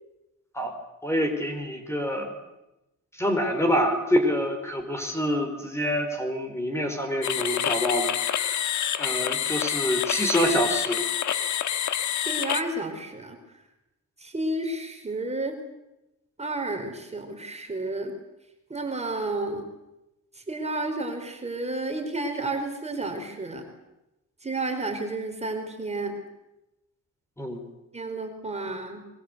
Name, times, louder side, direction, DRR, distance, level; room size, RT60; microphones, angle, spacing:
voice 1, 1.0-2.3 3.2-11.0 27.4-27.6, equal, 10° left, 5 dB, 4.9 m, -26 dB
sound 1, 7.2-12.6, left 10 dB, 70° left, 1.5 m, -27 dB
voice 2, 12.3-13.4 14.2-15.6 16.4-18.1 18.7-19.7 20.5-23.6 24.4-26.2 27.9-29.0, right 2 dB, 20° right, 4 dB, 4.6 m, -31 dB
25.0 x 23.0 x 8.2 m, 0.95 s
cardioid pair, 90°, 30 cm